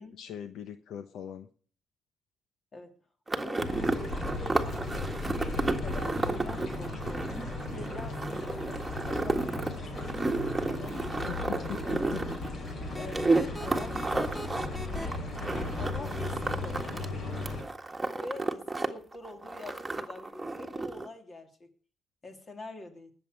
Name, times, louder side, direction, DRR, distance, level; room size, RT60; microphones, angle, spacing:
voice 1, 0.0-1.5 11.3-12.2, left 9 dB, 75° left, 10 dB, 1.0 m, -41 dB
sound 1, 3.3-17.0 17.3-18.9 19.1-21.1, right 2 dB, 15° right, 1.7 m, -32 dB
voice 2, 3.4-7.2 7.7-11.8 12.5-14.5 15.7-17.1 18.1-21.7 22.2-23.1, left 2 dB, 40° left, 5 dB, 3.2 m, -46 dB
sound 2, 3.6-17.6, left 2 dB, 55° left, 5.1 m, -36 dB
sound 3, 12.9-15.1, left 1 dB, 10° left, 1.7 m, -39 dB
19.5 x 7.6 x 6.5 m, 0.44 s
cardioid pair, 90°, 0 cm